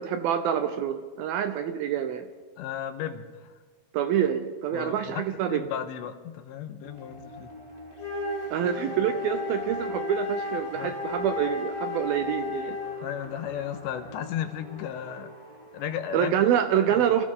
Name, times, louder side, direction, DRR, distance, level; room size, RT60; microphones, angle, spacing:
voice 1, 0.0-2.2 3.9-5.6 8.5-12.8 16.1-17.3, right 9 dB, 80° right, 8 dB, 2.2 m, -26 dB
voice 2, 2.6-3.5 4.7-7.5 10.8-10.9 13.0-15.3 15.7-16.3 16.9-17.1, left 9 dB, 80° left, 8 dB, 3.3 m, -35 dB
sound 1, 6.8-16.2, left 1 dB, 15° right, 2.2 m, -45 dB
Wind instrument woodwind instrument, 7.9-13.2, left 3 dB, 45° left, 3.7 m, -33 dB
29.0 x 25.0 x 3.8 m, 1.5 s
omnidirectional pair, 5.2 m